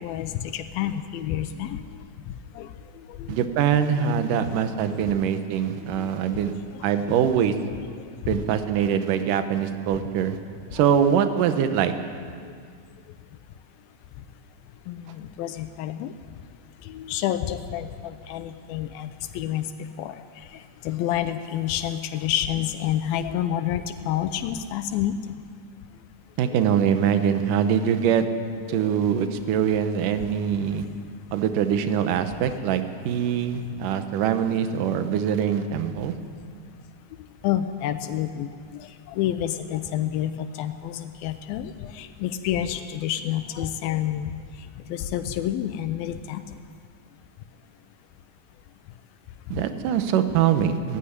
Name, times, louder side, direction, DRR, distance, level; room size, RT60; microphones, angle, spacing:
voice 1, 0.0-1.8 2.6-2.7 3.2-3.4 4.4-4.5 5.9-6.1 7.7-7.8 8.3-8.4 14.9-16.1 16.8-19.7 20.0-20.2 20.8-25.4 26.5-26.7 28.6-28.9 32.3-32.5 37.4-38.5 38.8-44.3 44.9-46.4, left 11 dB, 85° left, 9 dB, 2.5 m, -29 dB
voice 2, 3.3-6.5 6.8-7.6 8.3-10.4 10.7-11.9 26.4-28.3 28.7-30.9 31.3-36.1 49.5-51.0, right 8 dB, 70° right, 8 dB, 2.5 m, -23 dB
18.0 x 15.5 x 9.9 m, 2.1 s
omnidirectional pair, 4.1 m